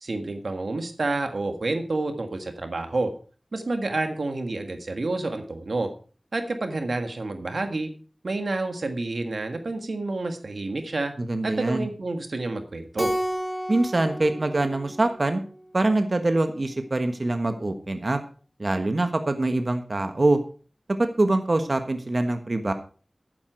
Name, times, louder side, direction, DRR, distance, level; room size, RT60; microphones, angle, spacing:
voice 1, 0.0-3.1 3.5-5.9 6.3-7.9 8.2-11.1 11.4-13.1, right 2 dB, 90° right, 6 dB, 1.6 m, -29 dB
voice 2, 11.2-11.9 13.7-15.4 15.7-18.2 18.6-20.4 21.0-22.7, right 2 dB, 55° right, 7 dB, 1.3 m, -24 dB
Keyboard (musical), 13.0-15.6, equal, 5° right, 1.1 m, -31 dB
11.5 x 10.0 x 4.4 m, 0.39 s
wide cardioid pair, 55°, 0 cm